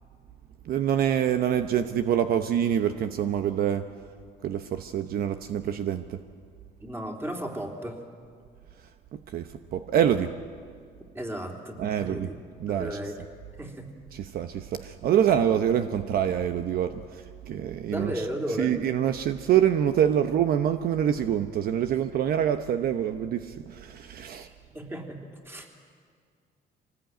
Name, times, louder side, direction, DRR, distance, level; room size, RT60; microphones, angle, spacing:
voice 1, 0.7-3.8 4.4-6.2 9.3-10.3 11.8-12.3 12.6-13.0 14.1-18.1 18.6-24.5, right 9 dB, 60° right, 9 dB, 0.9 m, -26 dB
voice 2, 6.8-8.0 11.1-12.3 12.7-13.2 13.6-13.9 17.9-18.8 24.3-25.7, right 1 dB, 15° right, 2 dB, 3.5 m, -35 dB
24.5 x 19.0 x 9.2 m, 2.1 s
cardioid pair, 110°, 17 cm